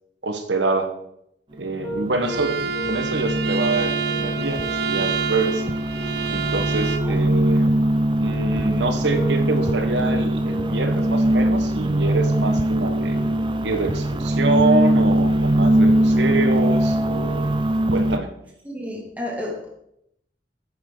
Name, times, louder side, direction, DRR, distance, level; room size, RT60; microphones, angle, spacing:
voice 1, 0.2-0.9 1.5-5.6 6.3-7.7 8.2-13.2 13.6-17.5 17.9-18.3, right 2 dB, 85° right, 7 dB, 1.4 m, -26 dB
Piano, 1.5-15.7, equal, 15° left, 4.0 m, -36 dB
sound 1, 1.7-18.2, right 1 dB, 30° right, 0.5 m, -21 dB
Bowed string instrument, 2.2-7.2, right 6 dB, 70° right, 0.7 m, -28 dB
voice 2, 18.6-19.7, left 1 dB, 10° right, -2 dB, 2.6 m, -31 dB
9.8 x 8.5 x 4.0 m, 0.76 s
head